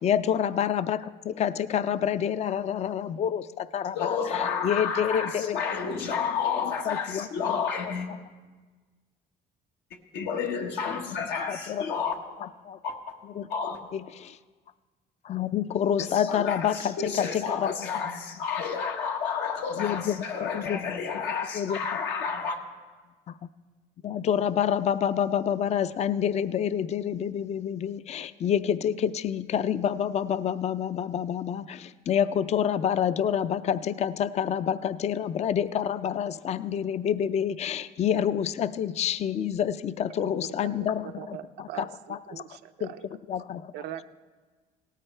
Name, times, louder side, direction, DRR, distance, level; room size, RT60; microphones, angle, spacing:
voice 1, 0.0-5.6 6.9-7.6 10.9-11.0 11.5-11.9 12.4-12.8 13.4-13.5 13.9-14.4 15.2-17.7 19.8-20.8 21.5-21.8 23.3-23.4 24.0-42.2 42.8-42.9 43.3-43.6, left 9 dB, 40° left, 14 dB, 0.4 m, -28 dB
voice 2, 3.9-8.1 10.1-12.2 12.8-13.2 13.5-13.8 16.0-22.6, left 6 dB, 85° left, 3 dB, 1.4 m, -31 dB
voice 3, 40.2-43.1 43.7-44.0, right 11 dB, 85° right, 9 dB, 0.6 m, -42 dB
17.5 x 13.5 x 3.3 m, 1.4 s
cardioid pair, 110°, 17 cm